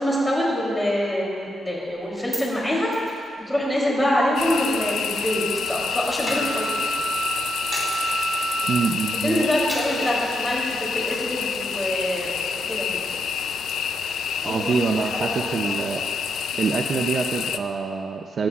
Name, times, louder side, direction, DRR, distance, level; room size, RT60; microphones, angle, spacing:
voice 1, 0.0-3.2 3.5-6.6 9.2-13.1 14.4-15.4 15.6-15.7, equal, 10° left, -5 dB, 3.3 m, -25 dB
Coin (dropping), 1.9-5.4 5.7-8.6 9.0-9.3 9.7-10.4 10.9-11.5 11.8-11.9 12.3-14.2, right 1 dB, 10° right, 2.7 m, -38 dB
sound 1, 4.4-17.6, left 8 dB, 80° left, 0.5 m, -28 dB
Wind instrument woodwind instrument, 4.5-9.6, right 3 dB, 90° right, 1.0 m, -31 dB
voice 2, 8.7-9.4 14.4-16.0 16.6-18.5, right 5 dB, 40° right, 3 dB, 0.6 m, -25 dB
20.5 x 16.5 x 2.5 m, 2.3 s
wide cardioid pair, 170°, 0 cm